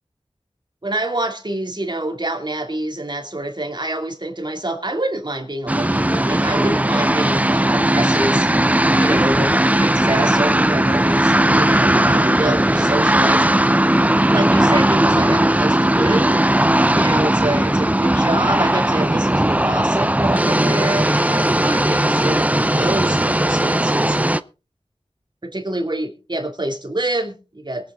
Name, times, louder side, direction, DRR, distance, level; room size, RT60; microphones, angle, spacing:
voice 1, 0.8-8.5 9.0-9.5 9.8-13.5 14.3-16.4 16.9-24.2 25.4-27.9, right 1 dB, 40° right, 3 dB, 2.8 m, -26 dB
sound 1, 5.7-24.4, right 1 dB, 15° right, 0.6 m, -17 dB
22.0 x 8.5 x 3.8 m, 0.33 s
wide cardioid pair, 50°, 11 cm